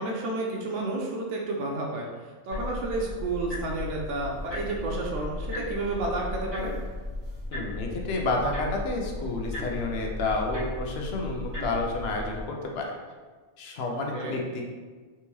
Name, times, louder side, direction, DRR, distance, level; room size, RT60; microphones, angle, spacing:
voice 1, 0.0-6.7 14.1-14.4, right 2 dB, 90° right, -2 dB, 0.9 m, -31 dB
sound 1, 2.5-12.4, left 2 dB, 20° right, 1.5 m, -36 dB
voice 2, 7.5-13.0 13.6-14.6, left 2 dB, 65° left, 0 dB, 0.8 m, -30 dB
3.4 x 2.8 x 3.0 m, 1.4 s
omnidirectional pair, 1.2 m